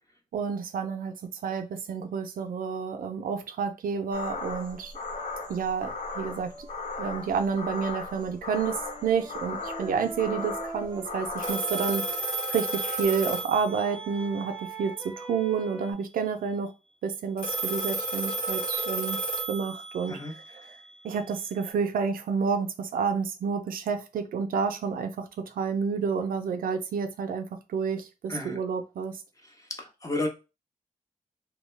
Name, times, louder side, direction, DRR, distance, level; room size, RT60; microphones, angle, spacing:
voice 1, 0.3-4.9 5.5-6.7 7.0-16.7 17.0-19.2 19.5-20.8 21.0-29.2, right 6 dB, 85° right, 0.4 m, -30 dB
sound 1, 4.1-11.5, left 3 dB, 60° left, 0.7 m, -37 dB
Wind instrument woodwind instrument, 8.6-13.1 13.6-15.9, right 3 dB, 20° right, 0.5 m, -41 dB
Telephone, 11.4-14.2 17.4-20.2, right 2 dB, 75° left, 1.3 m, -31 dB
voice 2, 29.8-30.3, left 2 dB, 25° left, 0.7 m, -31 dB
2.2 x 2.1 x 3.1 m
wide cardioid pair, 90°, 14 cm